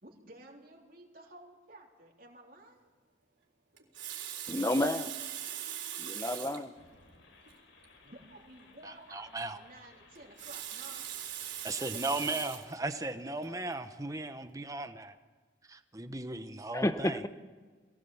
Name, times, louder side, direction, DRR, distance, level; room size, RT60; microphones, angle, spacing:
voice 1, 0.0-2.9 8.0-11.1 11.9-12.6, right 1 dB, 45° right, 0 dB, 3.4 m, -53 dB
Water tap faucet, 3.8-6.7 7.5-7.6 7.8-7.9 10.1-12.7 13.4-13.6, right 10 dB, 75° right, 4.0 m, -40 dB
voice 2, 4.5-5.1 6.0-6.7 16.7-17.3, left 1 dB, 15° left, 10 dB, 0.8 m, -30 dB
sound 1, 6.7-12.3, left 3 dB, 80° left, 3.6 m, -60 dB
voice 3, 8.8-9.6 11.6-15.1 15.7-17.2, right 2 dB, 15° right, 9 dB, 1.0 m, -37 dB
22.0 x 17.5 x 7.2 m, 1.5 s
head